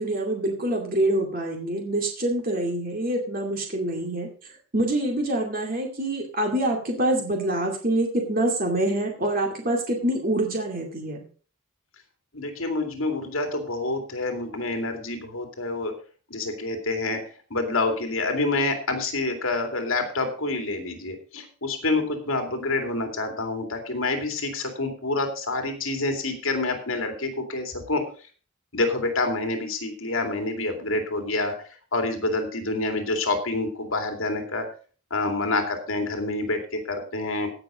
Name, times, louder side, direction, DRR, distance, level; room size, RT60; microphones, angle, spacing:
voice 1, 0.0-4.3 4.7-11.3, right 1 dB, 40° right, 1 dB, 2.4 m, -26 dB
voice 2, 12.3-15.9 16.3-17.2 17.5-28.0 28.7-31.5 31.9-34.6 35.1-37.5, left 2 dB, 75° left, 4 dB, 2.5 m, -27 dB
16.5 x 5.9 x 5.1 m, 0.40 s
head